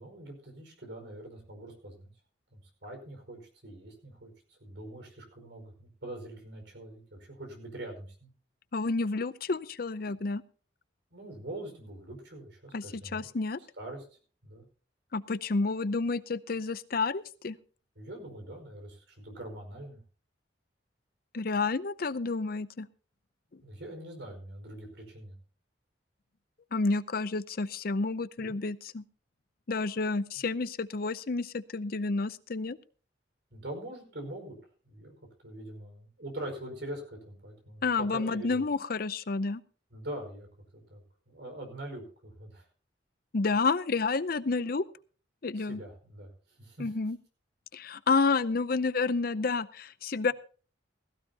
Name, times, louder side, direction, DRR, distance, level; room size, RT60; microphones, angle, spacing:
voice 1, 0.0-2.1 2.5-8.3 11.1-13.2 13.8-14.0 14.4-14.7 17.9-20.0 23.6-25.4 28.4-28.6 30.4-30.5 33.5-34.5 34.8-35.1 35.4-38.6 39.9-42.6 45.5-46.3 46.6-46.9, right 1 dB, 70° right, 4 dB, 5.0 m, -43 dB
voice 2, 8.7-10.4 12.7-12.8 13.1-13.6 15.1-17.6 21.3-22.9 26.7-29.0 29.7-32.8 37.8-39.6 43.3-44.9 45.4-45.8 46.8-47.2 47.7-50.3, left 4 dB, 50° left, 16 dB, 0.6 m, -30 dB
16.5 x 15.0 x 2.8 m, 0.38 s
head